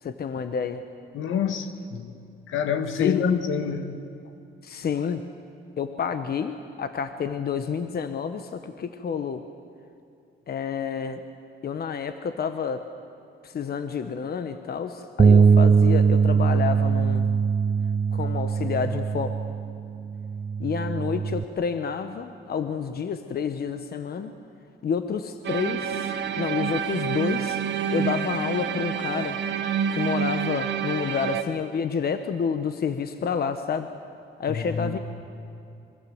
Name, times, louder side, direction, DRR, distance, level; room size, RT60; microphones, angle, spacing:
voice 1, 0.0-0.8 2.9-3.2 4.6-5.2 5.8-9.4 10.5-11.2 11.6-12.8 13.4-17.3 18.1-19.3 20.6-24.3 24.8-27.6 27.9-29.4 29.9-33.9 34.4-35.0, left 6 dB, 50° left, 9 dB, 1.3 m, -29 dB
voice 2, 1.1-2.2 2.5-4.1 34.5-35.0, left 7 dB, 75° left, 8 dB, 2.0 m, -27 dB
Bass guitar, 15.2-21.4, right 6 dB, 30° right, 0.6 m, -21 dB
sound 1, 25.4-31.4, right 7 dB, 65° right, 1.9 m, -28 dB
26.0 x 24.0 x 8.0 m, 2.7 s
cardioid pair, 90°, 20 cm